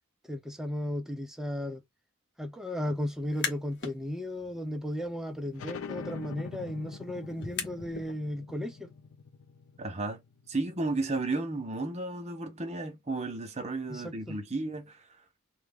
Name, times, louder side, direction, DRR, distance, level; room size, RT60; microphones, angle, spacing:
voice 1, 0.3-1.8 2.4-8.9 13.9-14.4, left 1 dB, ahead, 0.5 m, -35 dB
sound 1, 3.2-4.0 4.4-8.1, left 6 dB, 55° left, 0.8 m, -41 dB
sound 2, 5.5-10.8, left 5 dB, 70° left, 0.4 m, -44 dB
voice 2, 9.8-10.2 10.5-15.1, right 2 dB, 30° right, 0.7 m, -33 dB
3.1 x 2.3 x 3.4 m
head